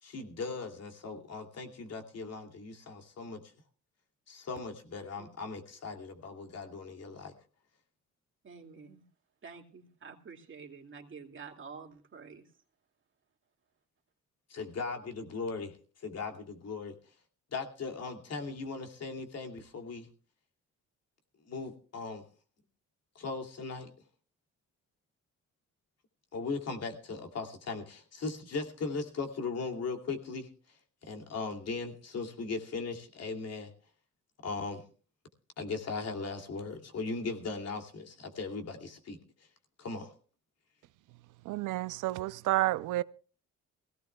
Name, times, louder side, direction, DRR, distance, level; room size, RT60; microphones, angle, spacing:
voice 1, 0.0-3.4 4.3-7.3 14.5-16.9 17.5-20.1 21.4-22.2 23.1-23.9 26.3-30.8 31.0-33.7 34.4-34.8 35.6-39.2 39.8-40.1, left 4 dB, 55° left, 2.7 m, -38 dB
voice 2, 8.4-9.0 9.4-12.4, right 5 dB, 40° right, 2.4 m, -48 dB
voice 3, 41.4-43.0, right 16 dB, 90° right, 0.6 m, -30 dB
23.0 x 17.0 x 2.3 m
cardioid pair, 90°, 30 cm